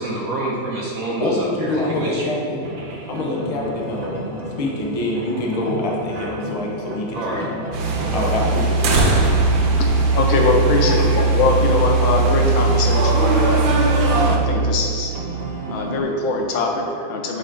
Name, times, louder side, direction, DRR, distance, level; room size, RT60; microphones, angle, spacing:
voice 1, 0.0-2.3 7.1-7.5 8.0-8.3, right 2 dB, 55° right, -3 dB, 1.0 m, -28 dB
voice 2, 1.2-2.7 3.1-4.2 4.6-7.5 8.1-9.2 10.8-11.2, left 1 dB, 30° left, -2 dB, 0.6 m, -25 dB
sound 1, 2.6-16.0, right 1 dB, 90° right, 0.3 m, -32 dB
sound 2, 7.7-14.4, right 3 dB, 70° right, 1.6 m, -18 dB
voice 3, 9.8-15.1 15.7-17.4, left 3 dB, 80° left, 1 dB, 1.7 m, -22 dB
10.5 x 4.2 x 3.9 m, 2.4 s
omnidirectional pair, 2.2 m